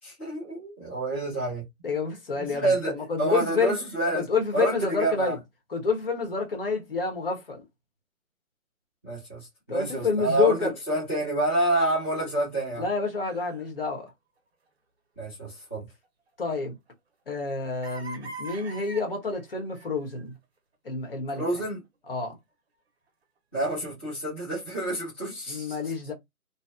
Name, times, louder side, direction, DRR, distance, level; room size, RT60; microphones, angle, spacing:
voice 1, 0.0-1.6 2.4-4.3 4.5-5.4 9.0-12.9 15.2-15.9 21.3-21.8 23.5-25.9, right 2 dB, 10° left, 0.7 m, -28 dB
voice 2, 1.8-3.8 4.1-5.4 5.7-7.6 9.7-10.7 12.8-14.1 16.4-16.7 17.3-20.3 20.8-21.4 22.1-22.4 25.5-26.1, left 5 dB, 40° left, 1.1 m, -28 dB
sound 1, 13.3-13.7 14.1-14.2 14.7-14.8 16.0-16.9 17.3-17.4 17.8-20.2 21.3-21.4, right 3 dB, 45° right, 0.7 m, -42 dB
2.8 x 2.7 x 2.3 m
hypercardioid pair, 160°, 43 cm